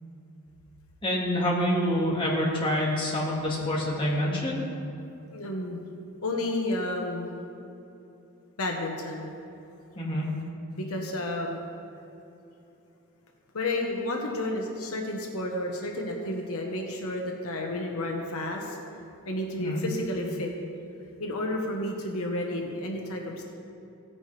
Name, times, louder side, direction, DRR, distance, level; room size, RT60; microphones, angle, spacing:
voice 1, 1.0-4.7 10.0-10.3 19.6-19.8, equal, 20° left, -5 dB, 2.0 m, -27 dB
voice 2, 5.3-5.8 6.2-7.3 8.6-9.3 10.8-11.6 13.5-18.8 19.2-20.5 21.2-23.4, left 1 dB, 75° left, 1 dB, 1.2 m, -31 dB
16.5 x 9.8 x 3.4 m, 2.8 s
head